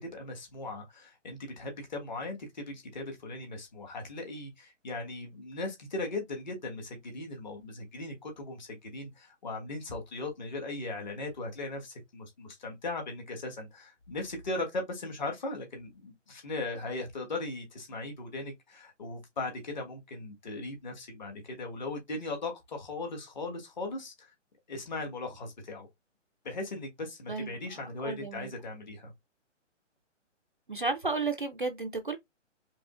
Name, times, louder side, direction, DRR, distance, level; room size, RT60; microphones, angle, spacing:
voice 1, 0.0-24.3 24.7-25.9 26.4-29.1, left 2 dB, 35° left, 1.4 m, -38 dB
voice 2, 28.0-28.5 30.7-32.2, right 3 dB, 45° right, 0.4 m, -32 dB
4.8 x 3.2 x 2.4 m
hypercardioid pair, 180°, 37 cm